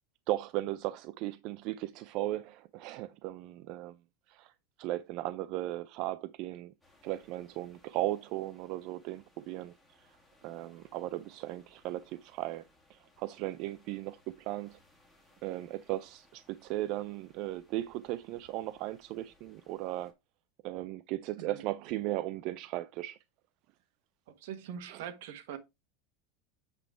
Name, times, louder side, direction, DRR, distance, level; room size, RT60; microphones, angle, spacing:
voice 1, 0.3-4.0 4.3-4.5 4.8-6.7 7.0-10.1 10.4-12.6 12.9-14.8 15.4-20.1 20.6-23.2 24.9-25.1, right 15 dB, 40° right, 0.3 m, -37 dB
sound 1, 6.8-20.1, left 1 dB, ahead, 1.9 m, -66 dB
voice 2, 24.4-25.6, right 9 dB, 65° right, 1.1 m, -42 dB
8.0 x 3.6 x 4.6 m
supercardioid pair, 175°, 0 cm